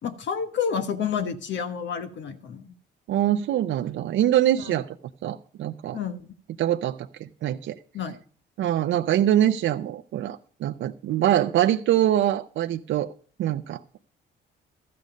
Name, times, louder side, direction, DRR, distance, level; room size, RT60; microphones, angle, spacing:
voice 1, 0.0-2.7 4.6-4.8 5.9-6.3 7.9-8.2, left 7 dB, 65° left, 8 dB, 1.2 m, -29 dB
voice 2, 3.1-4.9 5.2-6.0 6.6-7.8 8.6-13.1 13.4-14.0, right 12 dB, 70° right, 8 dB, 0.6 m, -24 dB
13.0 x 8.5 x 5.2 m, 0.43 s
cardioid pair, 90°, 20 cm